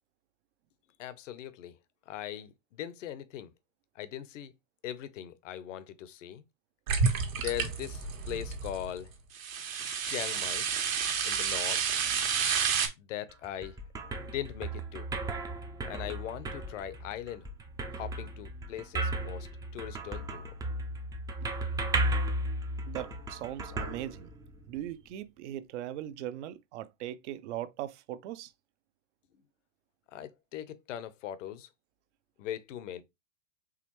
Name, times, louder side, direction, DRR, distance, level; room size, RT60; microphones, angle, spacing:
voice 1, 1.0-1.8 2.1-3.5 3.9-4.5 4.8-6.4 7.3-9.1 10.0-10.7 11.2-11.8 13.0-13.8 14.2-15.1 15.8-17.5 17.9-19.5 19.7-20.5 30.1-31.7 32.4-33.0, left 11 dB, 65° left, 0.8 m, -40 dB
sound 1, 6.9-8.9 9.3-12.9, right 6 dB, 80° right, 1.5 m, -30 dB
sound 2, 13.3-24.8, right 1 dB, 10° right, 0.4 m, -35 dB
voice 2, 22.8-24.3 24.7-28.5, right 12 dB, 60° right, 0.7 m, -39 dB
4.9 x 3.3 x 3.0 m
hypercardioid pair, 110°, 40 cm